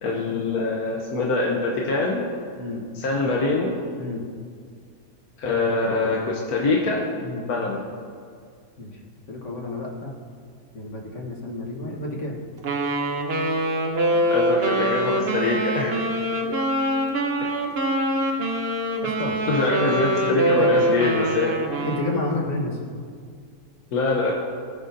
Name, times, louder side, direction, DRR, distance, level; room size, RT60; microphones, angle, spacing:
voice 1, 0.0-2.2 2.9-3.8 5.4-7.0 7.4-7.8 14.1-16.0 17.4-17.5 19.5-21.6 23.9-24.3, left 3 dB, 85° left, -2 dB, 1.5 m, -24 dB
voice 2, 4.0-4.3 7.2-7.5 8.8-8.9 9.3-10.2 10.7-12.4 19.0-19.4 20.2-20.9 21.8-22.8, left 2 dB, 55° left, -2 dB, 1.7 m, -30 dB
Wind instrument woodwind instrument, 12.6-22.2, right 1 dB, 50° right, 1.0 m, -24 dB
19.0 x 6.3 x 2.7 m, 2.1 s
omnidirectional pair, 1.5 m